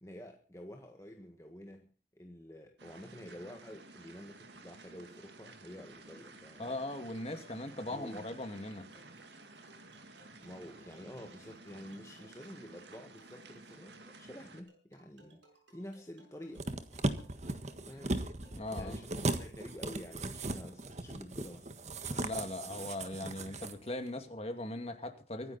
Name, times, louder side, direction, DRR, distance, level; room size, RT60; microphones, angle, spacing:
voice 1, 0.0-6.7 7.8-8.3 10.4-15.4 15.7-16.7 16.9-17.3 17.8-18.2 18.8-21.7 22.1-22.3, equal, 15° left, 1.6 m, -49 dB
sound 1, 2.8-14.6, right 3 dB, 70° right, 2.2 m, -54 dB
voice 2, 6.6-8.8 18.5-19.0 22.2-25.6, left 1 dB, 35° left, 2.3 m, -39 dB
sound 2, 6.7-20.5, right 1 dB, 85° right, 7.3 m, -64 dB
sound 3, 16.6-23.7 24.1-24.2, right 2 dB, 40° right, 1.6 m, -37 dB
24.5 x 10.5 x 4.2 m
head